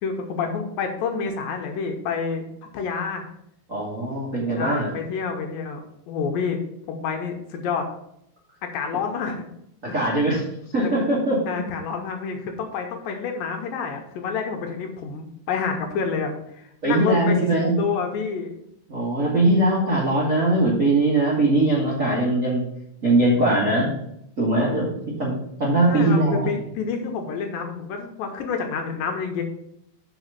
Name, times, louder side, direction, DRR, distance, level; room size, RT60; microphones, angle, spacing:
voice 1, 0.0-2.4 2.7-3.2 4.5-5.8 6.1-6.6 6.9-7.9 8.6-9.4 10.8-10.9 11.5-18.6 23.4-24.1 25.9-29.4, left 5 dB, 75° left, 3 dB, 2.4 m, -28 dB
voice 2, 3.7-4.9 9.8-10.4 10.7-11.6 16.8-17.7 18.9-22.6 23.0-23.9 24.4-24.9 25.2-25.3 25.6-26.5, right 2 dB, 60° right, -6 dB, 0.8 m, -21 dB
6.0 x 4.9 x 6.7 m, 0.77 s
omnidirectional pair, 4.5 m